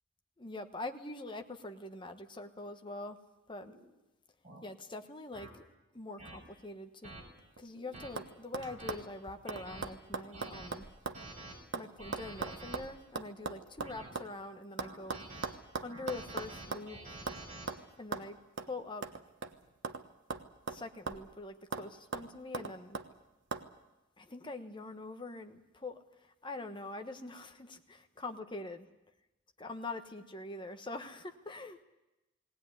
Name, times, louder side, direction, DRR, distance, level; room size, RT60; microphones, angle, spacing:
voice 1, 0.4-3.2 3.5-3.7 4.6-5.6 5.9-7.1 7.6-10.9 11.7-15.2 15.8-17.2 18.0-19.0 20.7-23.0 24.2-28.9 29.6-31.8, left 2 dB, 25° left, 7 dB, 1.2 m, -44 dB
sound 1, 3.6-3.8 4.4-4.6 5.3-5.5 6.2-6.4 7.0-7.2 7.7-8.1 8.6-9.0 9.5-9.8 10.3-10.7 11.1-11.5 12.0-12.8 13.4-14.1 14.8-15.5 15.9-17.7, right 2 dB, 35° right, 6.1 m, -48 dB
sound 2, 7.4-7.8 8.2-8.3 8.5-11.2 11.5-14.3 14.8-16.9 17.3-17.4 17.7-17.8 18.1-18.3 18.6-18.7 19.0-20.0 20.3-21.3 21.7-21.9 22.1-23.1 23.5-23.7, right 4 dB, 60° right, 1.1 m, -40 dB
20.0 x 18.0 x 9.7 m, 0.99 s
head